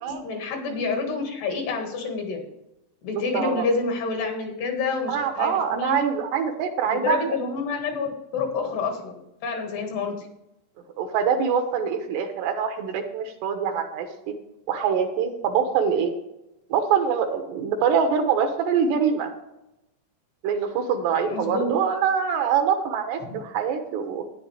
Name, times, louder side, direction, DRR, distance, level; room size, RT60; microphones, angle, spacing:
voice 1, 0.1-2.4 3.0-6.0 6.9-9.1 9.4-10.2 21.2-21.7 23.3-23.4, left 4 dB, 70° left, 3 dB, 3.8 m, -28 dB
voice 2, 3.1-3.7 5.1-7.2 11.0-14.1 14.7-16.1 16.7-19.3 20.4-24.2, right 7 dB, 75° right, 6 dB, 3.0 m, -24 dB
11.5 x 10.5 x 3.4 m, 0.88 s
omnidirectional pair, 5.2 m